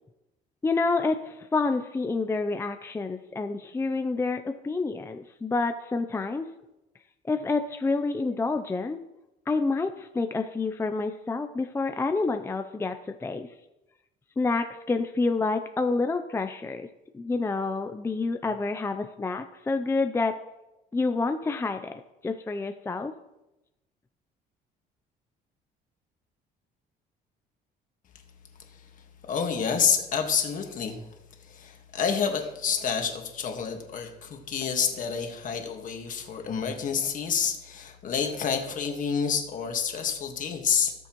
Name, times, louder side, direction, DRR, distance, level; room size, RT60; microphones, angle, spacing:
voice 1, 0.6-6.5 7.3-9.0 9.5-13.5 14.4-16.9 17.1-20.3 20.9-23.1, left 3 dB, 15° left, 7 dB, 0.5 m, -28 dB
voice 2, 29.3-31.0 31.5-40.9, left 7 dB, 50° left, 4 dB, 1.6 m, -28 dB
17.0 x 6.9 x 3.0 m, 0.96 s
cardioid pair, 110°, 17 cm